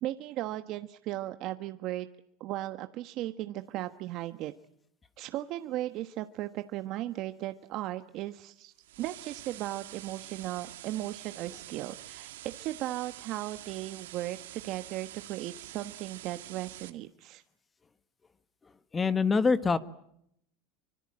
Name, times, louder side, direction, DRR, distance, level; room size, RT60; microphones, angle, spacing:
voice 1, 0.0-2.1 2.4-4.5 5.2-17.4, right 15 dB, 50° right, 9 dB, 1.2 m, -36 dB
sound 1, 8.8-16.9, right 14 dB, 85° right, 2.1 m, -46 dB
voice 2, 18.9-19.8, left 4 dB, 20° left, 13 dB, 1.5 m, -24 dB
26.0 x 25.0 x 8.8 m, 0.74 s
supercardioid pair, 115°, 0 cm